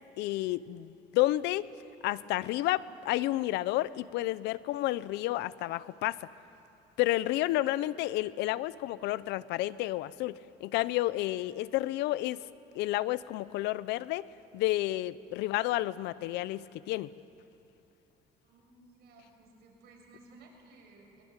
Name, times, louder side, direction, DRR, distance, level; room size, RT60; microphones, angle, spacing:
voice 1, 0.2-1.7 2.0-6.2 7.0-12.4 12.7-14.3 14.5-17.1, left 16 dB, 90° left, 18 dB, 0.6 m, -31 dB
voice 2, 18.4-21.2, right 2 dB, 75° right, 0 dB, 6.4 m, -57 dB
22.0 x 22.0 x 9.0 m, 2.7 s
cardioid pair, 110°, 17 cm